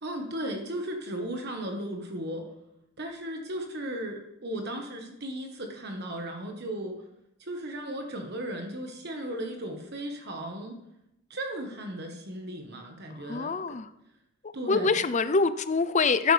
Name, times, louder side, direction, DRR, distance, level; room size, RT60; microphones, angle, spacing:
voice 1, 0.0-2.5 3.0-7.0 7.4-10.8 11.3-13.8 14.5-14.9, right 1 dB, 45° right, 3 dB, 1.3 m, -36 dB
voice 2, 13.3-13.9 14.7-16.3, left 4 dB, 30° left, 13 dB, 0.5 m, -24 dB
13.5 x 11.0 x 3.4 m, 0.84 s
head